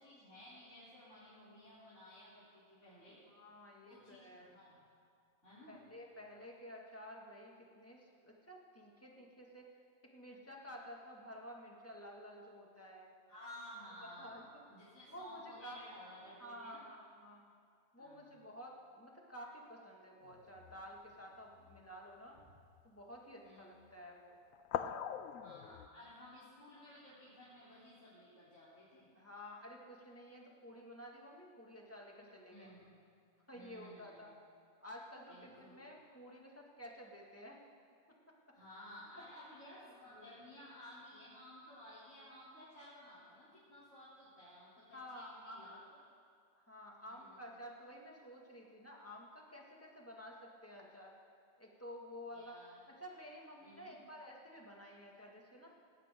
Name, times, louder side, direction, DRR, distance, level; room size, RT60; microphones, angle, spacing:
voice 1, 0.0-3.2 3.8-4.8 5.4-5.8 13.3-16.9 18.0-18.5 22.4-22.5 23.4-23.7 25.4-29.1 32.5-33.0 33.5-34.3 35.3-35.7 38.5-45.8 47.1-47.5 52.3-52.7 53.6-54.0, left 1 dB, 70° left, -12 dB, 4.2 m, -55 dB
voice 2, 3.3-4.5 5.7-9.6 10.1-13.1 14.2-14.4 15.1-15.8 16.4-17.5 17.9-22.4 22.8-24.4 29.2-32.7 33.5-34.4 34.8-37.6 39.7-40.3 44.9-45.6 46.6-51.1 51.6-52.6 53.0-55.7, equal, 10° left, -2 dB, 2.0 m, -52 dB
sound 1, 20.2-21.0 21.6-21.8 22.7-22.9 24.5-25.9, left 9 dB, 90° left, 1.0 m, -42 dB
19.0 x 17.0 x 3.8 m, 2.3 s
omnidirectional pair, 1.3 m